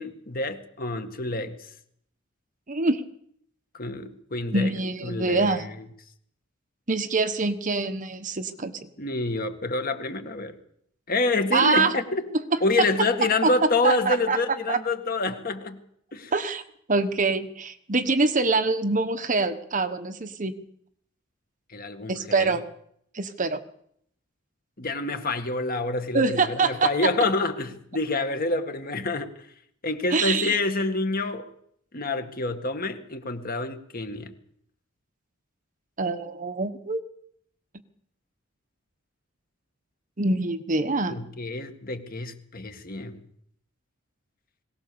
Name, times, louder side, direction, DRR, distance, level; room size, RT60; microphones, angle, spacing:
voice 1, 0.0-1.6 3.8-4.7 5.0-5.7 9.0-10.5 11.1-12.2 12.6-15.8 16.1-16.3 21.7-22.5 24.8-29.3 29.8-31.5 31.9-34.3 41.1-43.2, left 2 dB, 45° left, 7 dB, 1.9 m, -27 dB
voice 2, 2.7-3.0 4.5-5.7 6.9-8.9 11.5-11.9 12.5-12.6 13.4-13.5 13.8-14.4 14.7-14.8 16.3-16.6 16.9-20.5 22.1-22.7 23.1-23.6 26.1-26.9 30.1-30.6 36.0-37.0 40.2-41.1, right 3 dB, 40° right, 9 dB, 1.2 m, -25 dB
21.5 x 18.0 x 7.0 m, 0.68 s
head